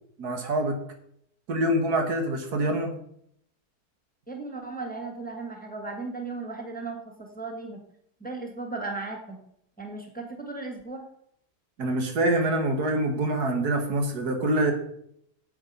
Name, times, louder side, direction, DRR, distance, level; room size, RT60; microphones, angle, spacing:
voice 1, 0.2-0.8 1.5-2.9 11.8-14.7, right 1 dB, 70° right, 4 dB, 2.0 m, -25 dB
voice 2, 4.3-7.8 8.2-9.4 9.8-11.0, right 3 dB, 5° left, 2 dB, 1.5 m, -36 dB
8.2 x 7.7 x 5.5 m, 0.71 s
omnidirectional pair, 1.7 m